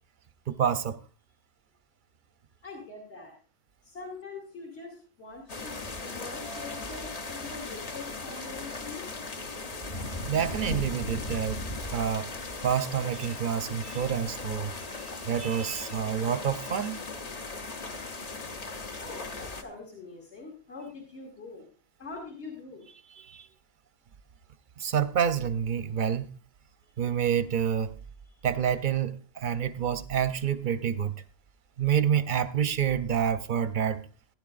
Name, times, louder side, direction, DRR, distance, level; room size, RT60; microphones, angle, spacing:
voice 1, 0.5-1.0 10.3-11.6 11.9-12.3 12.6-14.7 15.2-17.0 23.2-23.5 24.8-26.3 27.0-27.9 28.4-31.1 31.8-34.0, right 8 dB, 55° right, 0.6 m, -28 dB
voice 2, 2.6-3.3 3.8-9.0 19.0-21.7 22.0-22.8 27.0-27.1 28.2-28.3, left 3 dB, 60° left, 2.4 m, -43 dB
sound 1, 5.5-19.6, left 3 dB, 35° left, 0.8 m, -38 dB
15.5 x 10.0 x 2.5 m
omnidirectional pair, 1.3 m